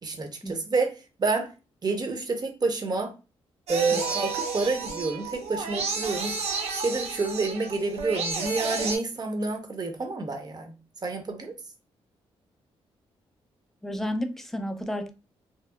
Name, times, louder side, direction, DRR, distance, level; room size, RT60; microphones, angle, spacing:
voice 1, 0.0-1.5 1.8-3.1 3.7-6.3 6.7-10.8 11.0-11.5, right 3 dB, 40° right, 0.7 m, -28 dB
sound 1, 3.7-9.0, right 4 dB, 75° right, 0.6 m, -31 dB
voice 2, 13.8-15.1, equal, 5° left, 0.4 m, -31 dB
2.8 x 2.0 x 2.2 m
cardioid pair, 65°, 11 cm